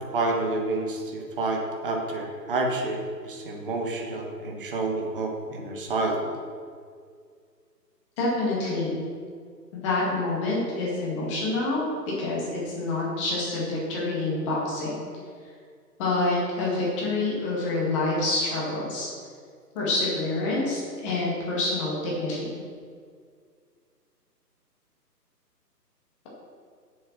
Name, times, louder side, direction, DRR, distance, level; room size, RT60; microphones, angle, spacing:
voice 1, 0.1-6.3, right 2 dB, 30° right, 1 dB, 1.5 m, -29 dB
voice 2, 8.2-9.0 9.7-15.0 16.0-19.1 19.7-22.6, left 2 dB, 20° left, -5 dB, 2.0 m, -27 dB
7.3 x 7.1 x 6.5 m, 2.1 s
hypercardioid pair, 155°, 50 cm